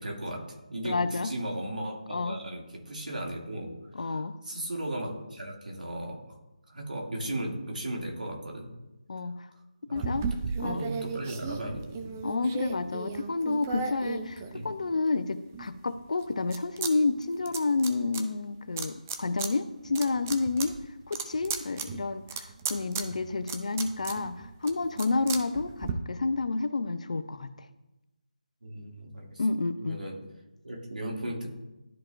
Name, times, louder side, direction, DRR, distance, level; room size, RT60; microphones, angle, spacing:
voice 1, 0.0-6.4 6.7-8.7 9.9-10.0 10.6-12.2 14.5-14.7 28.6-29.4 29.8-30.2 30.6-31.5, right 1 dB, 85° right, -1 dB, 2.4 m, -36 dB
voice 2, 0.8-1.3 2.1-2.4 3.9-4.4 9.1-9.5 9.9-10.3 10.6-10.8 12.2-20.8 21.1-27.5 29.4-30.0, left 3 dB, 60° left, 12 dB, 0.6 m, -30 dB
sound 1, 9.9-15.0 15.5-16.9 17.2-18.2 18.8-19.5 19.8-25.9, right 5 dB, 15° right, 0.4 m, -36 dB
12.5 x 4.4 x 2.6 m, 0.98 s
figure-of-eight pair, 165°, 4 cm